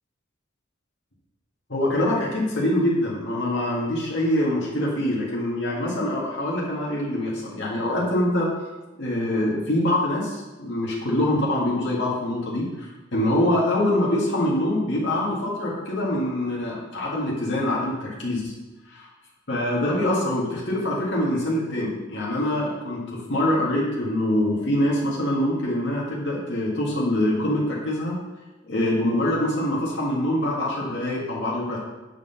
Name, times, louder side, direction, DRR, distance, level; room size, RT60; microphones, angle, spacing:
voice 1, 1.7-8.5 9.0-18.5 18.9-19.1 19.5-28.2 28.6-31.8, left 1 dB, 65° left, -5 dB, 1.9 m, -24 dB
7.7 x 4.9 x 5.6 m, 1.1 s
head